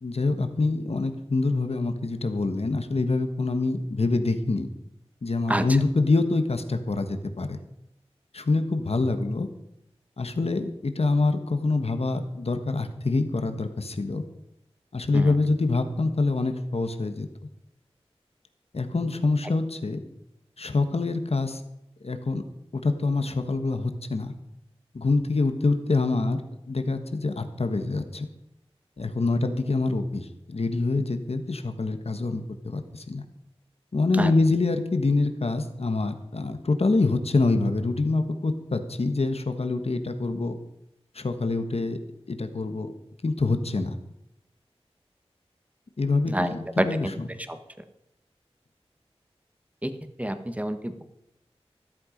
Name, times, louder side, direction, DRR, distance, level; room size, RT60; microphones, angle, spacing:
voice 1, 0.0-4.7 5.2-7.6 8.3-9.5 10.2-14.2 14.9-17.3 18.7-20.0 20.6-21.6 22.0-22.4 22.7-24.3 24.9-26.4 26.7-28.3 29.0-33.2 33.9-40.5 41.1-42.0 42.3-42.9 43.2-44.0 46.0-47.3, left 3 dB, 70° left, 7 dB, 1.5 m, -25 dB
voice 2, 46.3-47.1 47.5-47.6 49.8-49.9 50.2-51.0, right 1 dB, 15° right, 8 dB, 1.4 m, -27 dB
14.0 x 13.0 x 5.2 m, 0.84 s
wide cardioid pair, 60°, 11 cm